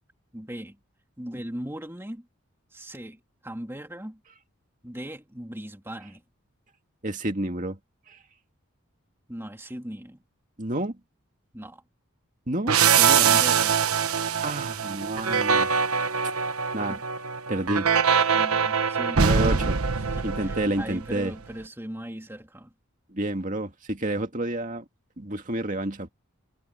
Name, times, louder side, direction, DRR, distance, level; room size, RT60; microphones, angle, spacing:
voice 1, 0.3-0.8 1.2-2.2 2.7-3.2 3.4-4.2 4.8-6.2 9.3-10.2 11.5-11.8 12.8-13.8 16.9-17.0 18.3-19.7 20.2-22.7, equal, 10° right, 2.8 m, -38 dB
voice 2, 7.0-7.8 8.1-8.2 10.6-10.9 12.5-13.3 14.4-15.7 16.7-17.0 17.5-17.9 19.2-19.8 20.2-21.3 23.1-24.8 25.2-26.1, right 1 dB, 35° right, 2.2 m, -29 dB
sound 1, 12.7-21.1, right 6 dB, 85° right, 1.1 m, -23 dB
head